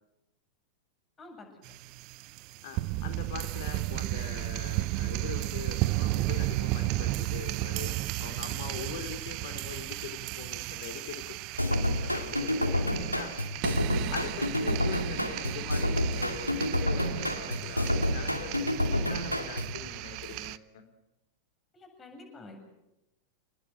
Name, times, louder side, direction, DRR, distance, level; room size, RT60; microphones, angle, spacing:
voice 1, 1.2-1.8 21.7-22.7, left 2 dB, 20° left, 4 dB, 7.8 m, -49 dB
sound 1, 1.6-20.6, right 18 dB, 45° right, 0.8 m, -34 dB
voice 2, 2.6-11.4 11.7-13.4 14.1-20.8, left 8 dB, 55° left, 7 dB, 4.0 m, -42 dB
sound 2, 11.6-19.8, left 1 dB, 90° left, 2.3 m, -29 dB
28.5 x 20.0 x 8.0 m, 0.91 s
figure-of-eight pair, 90°, 0 cm